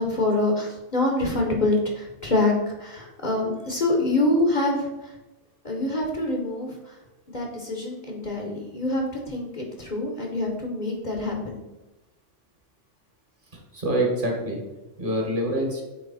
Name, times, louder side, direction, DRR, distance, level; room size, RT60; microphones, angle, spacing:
voice 1, 0.0-4.9 5.6-6.7 7.3-11.6, left 2 dB, 40° left, 0 dB, 1.1 m, -25 dB
voice 2, 13.5-14.6 15.0-15.8, right 1 dB, 45° right, -1 dB, 1.6 m, -26 dB
8.3 x 3.2 x 4.0 m, 1.0 s
omnidirectional pair, 1.2 m